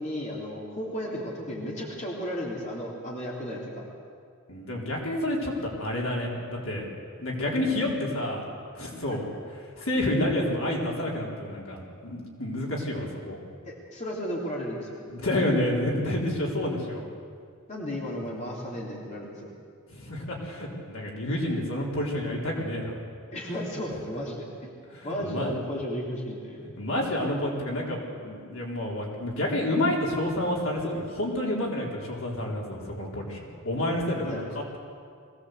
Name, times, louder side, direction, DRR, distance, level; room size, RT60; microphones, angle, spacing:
voice 1, 0.0-3.9 9.1-9.2 13.6-15.0 17.7-19.5 23.3-24.7 25.0-26.6 34.2-34.4, equal, 35° left, -3 dB, 3.3 m, -34 dB
voice 2, 4.5-6.9 7.2-8.5 8.7-9.3 9.8-13.4 15.1-17.0 19.9-22.9 24.9-25.6 26.1-26.3 26.8-34.8, left 1 dB, 65° left, -2 dB, 4.1 m, -29 dB
22.0 x 17.0 x 8.0 m, 2.2 s
head